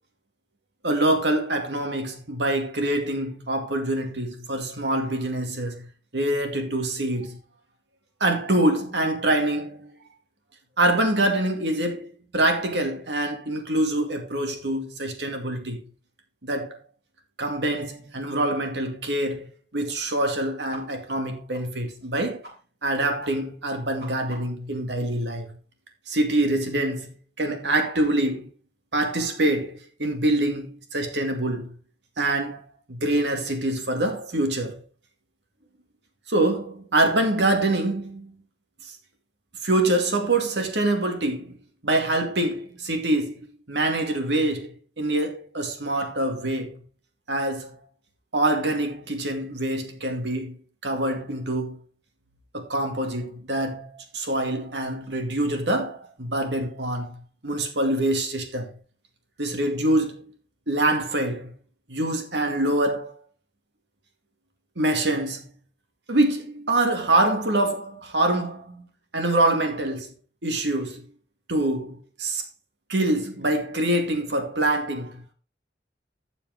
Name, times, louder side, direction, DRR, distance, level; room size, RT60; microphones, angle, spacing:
voice 1, 0.8-5.9 6.1-7.4 8.2-9.9 10.8-15.8 16.4-16.8 17.4-19.5 19.7-22.4 22.8-25.6 26.1-27.1 27.4-28.5 28.9-31.7 32.2-32.6 32.9-34.8 36.3-38.4 38.8-38.9 39.6-41.6 41.8-43.4 43.7-46.8 47.3-47.8 48.3-50.6 50.8-51.8 52.5-57.1 57.4-58.7 59.4-60.3 60.7-61.5 61.9-63.2 64.8-65.4 66.1-68.9 69.1-70.1 70.4-71.0 71.5-72.4 72.9-75.3, right 1 dB, 85° right, 2.3 m, -25 dB
sound 1, 20.7-20.8 21.1-21.2 21.5-21.6 22.0-22.1 22.4-22.5 22.8-22.9 23.2-23.3 23.6-24.7, right 1 dB, 60° right, 5.3 m, -44 dB
13.0 x 6.9 x 3.6 m
head